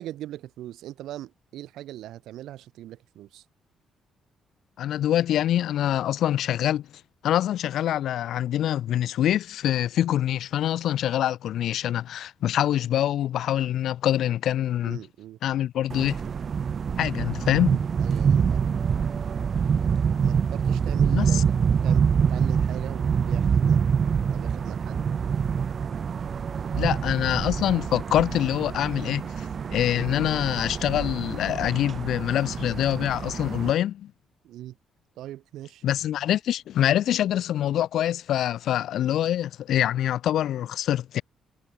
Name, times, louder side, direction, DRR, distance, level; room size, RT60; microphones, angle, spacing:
voice 1, 0.0-3.4 14.8-15.4 18.0-18.8 20.2-21.5 21.8-23.8 24.3-25.1 34.4-34.8 35.2-35.8, right 13 dB, 85° right, 4.8 m, -40 dB
voice 2, 4.8-6.9 7.2-15.0 15.4-16.2 17.0-17.8 21.1-21.4 26.8-34.1 35.8-41.2, left 11 dB, 75° left, 0.9 m, -25 dB
sound 1, 15.9-33.7, right 6 dB, 50° right, 0.6 m, -26 dB
cardioid pair, 90°, 0 cm